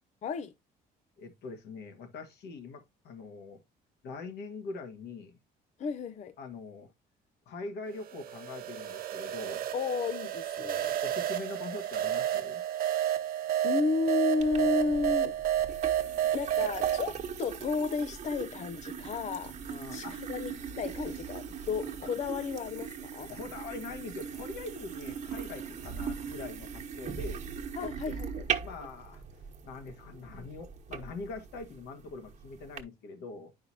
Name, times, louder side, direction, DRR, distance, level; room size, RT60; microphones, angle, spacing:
voice 1, 0.2-0.5 5.8-6.3 9.7-11.0 12.8-13.1 13.6-15.3 16.3-19.6 19.9-23.3 27.8-28.5, left 4 dB, 45° left, 0.6 m, -32 dB
voice 2, 1.2-3.6 4.0-5.4 6.4-6.9 7.5-9.7 11.0-12.6 19.7-20.2 23.3-27.4 27.8-28.1 28.6-29.2 29.6-33.5, left 3 dB, 75° left, 1.7 m, -43 dB
sound 1, 8.0-17.1, right 11 dB, 60° right, 0.9 m, -31 dB
sound 2, 14.4-32.8, right 7 dB, 45° right, 1.3 m, -40 dB
9.4 x 5.5 x 2.7 m
cardioid pair, 110°, 17 cm